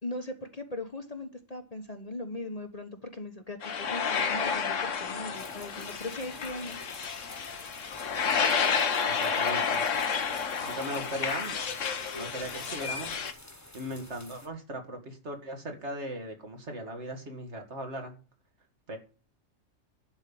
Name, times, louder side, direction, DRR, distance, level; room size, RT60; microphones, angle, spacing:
voice 1, 0.0-6.8, left 2 dB, 30° left, 6 dB, 1.2 m, -39 dB
sound 1, 3.6-13.3, left 6 dB, 75° left, 1.5 m, -30 dB
sound 2, 5.3-14.5, left 1 dB, 15° left, 1.5 m, -50 dB
voice 2, 9.0-9.8 10.6-11.6 12.1-13.2 13.7-18.1 18.9-19.0, right 1 dB, 60° right, 4 dB, 2.4 m, -38 dB
11.5 x 5.5 x 8.6 m, 0.37 s
omnidirectional pair, 1.3 m